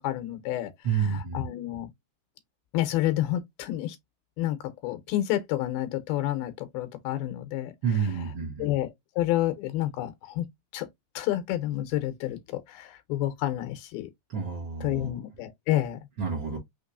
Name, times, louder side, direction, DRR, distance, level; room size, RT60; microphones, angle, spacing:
voice 1, 0.0-1.9 2.7-4.0 4.4-7.7 8.0-8.1 8.6-8.9 9.2-10.4 10.7-10.9 11.2-12.4 12.7-14.1 14.8-16.0, left 14 dB, 85° left, 2.7 m, -29 dB
voice 2, 0.8-1.5 7.8-8.7 14.3-15.2 16.2-16.6, right 6 dB, 90° right, 1.1 m, -29 dB
6.0 x 3.0 x 2.5 m
omnidirectional pair, 4.3 m